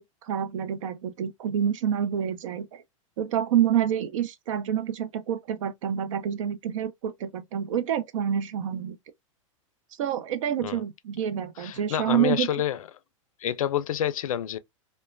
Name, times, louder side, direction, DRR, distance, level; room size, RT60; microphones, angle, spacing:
voice 1, 0.0-2.8 3.2-9.0 10.0-12.5, right 9 dB, 70° right, 0.6 m, -27 dB
voice 2, 11.6-12.8 13.4-14.6, left 10 dB, 85° left, 0.4 m, -28 dB
3.0 x 2.1 x 2.5 m
hypercardioid pair, 115°, 17 cm